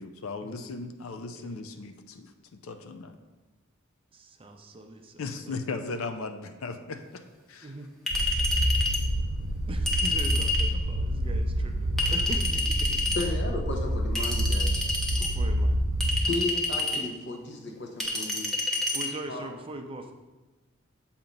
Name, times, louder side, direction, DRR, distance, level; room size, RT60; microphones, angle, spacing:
voice 1, 0.0-3.2 5.2-7.2 7.5-7.7, left 3 dB, 85° left, 7 dB, 0.5 m, -37 dB
voice 2, 4.1-5.6 7.6-7.9 9.7-12.9 13.2-13.3 15.1-15.8 18.9-20.1, right 2 dB, 25° right, 5 dB, 0.5 m, -41 dB
Chink clink, 8.1-9.0 9.9-10.7 12.0-13.2 14.2-15.3 16.0-17.0 18.0-19.1, left 2 dB, ahead, 0.8 m, -28 dB
sound 1, 8.1-16.2, equal, 60° right, 0.8 m, -28 dB
voice 3, 13.2-14.8 16.2-18.5 19.3-19.5, left 2 dB, 60° left, 2 dB, 0.9 m, -34 dB
7.2 x 2.9 x 5.2 m, 1.2 s
head